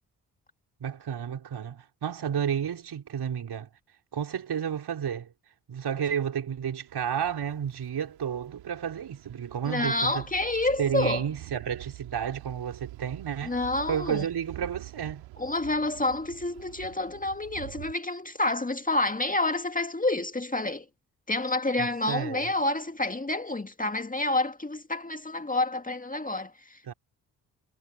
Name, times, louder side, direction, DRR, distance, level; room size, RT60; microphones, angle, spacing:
voice 1, 0.8-3.7 4.1-5.3 5.7-10.2 10.8-13.6 13.9-15.2 21.8-22.5 26.9-27.0, right 8 dB, 55° right, 4.9 m, -31 dB
sound 1, 6.9-17.9, right 19 dB, 75° right, 4.8 m, -46 dB
voice 2, 9.7-11.2 13.4-14.3 15.4-20.8 21.3-26.9, left 2 dB, 15° left, 2.2 m, -28 dB
hypercardioid pair, 40°, 47 cm